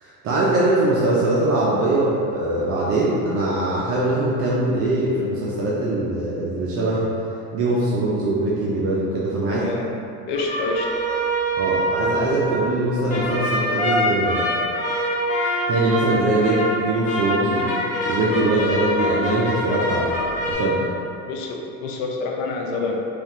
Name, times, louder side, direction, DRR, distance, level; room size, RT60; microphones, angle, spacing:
voice 1, 0.0-7.1 7.5-9.7 11.6-14.4 15.7-17.7 18.1-20.2 20.4-20.9, right 2 dB, 40° right, -7 dB, 0.5 m, -22 dB
voice 2, 9.5-9.9 10.3-10.9 21.2-23.0, left 3 dB, 70° left, 0 dB, 0.6 m, -27 dB
sound 1, 10.3-20.5, equal, 20° left, 0.7 m, -24 dB
3.1 x 2.4 x 2.8 m, 2.7 s
supercardioid pair, 120°, 35 cm